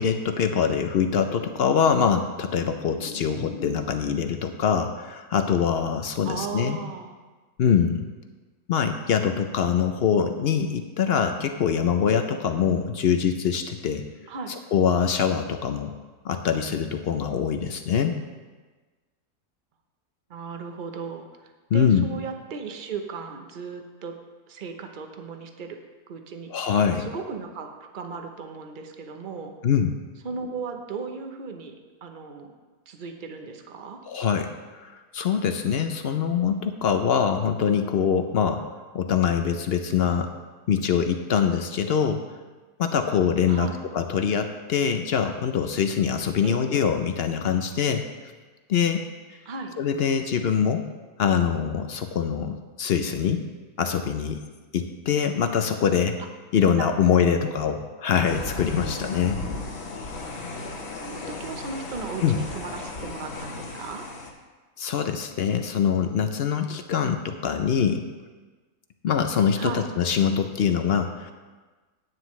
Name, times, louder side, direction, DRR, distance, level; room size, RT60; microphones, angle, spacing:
voice 1, 0.0-6.8 7.6-8.1 8.7-14.0 14.7-15.9 16.2-18.2 21.7-22.1 26.5-27.1 29.6-29.9 34.1-34.5 34.8-38.6 38.9-40.3 40.7-42.2 42.8-48.1 48.7-49.0 49.8-50.8 51.2-53.5 53.8-54.4 54.7-56.2 56.5-59.4 62.2-62.4 64.8-68.0 69.0-71.3, left 7 dB, 65° left, 7 dB, 0.6 m, -24 dB
voice 2, 6.2-7.1 14.3-14.5 20.3-24.2 24.5-25.8 26.1-26.7 27.0-29.5 30.2-32.5 32.9-34.0 43.5-43.8 46.4-46.6 49.5-49.7 56.8-57.3 60.9-64.1 69.6-69.9, right 4 dB, 40° right, 5 dB, 0.8 m, -36 dB
sound 1, 58.2-64.3, left 3 dB, 50° left, 1.2 m, -35 dB
10.5 x 9.4 x 3.1 m, 1.3 s
omnidirectional pair, 1.6 m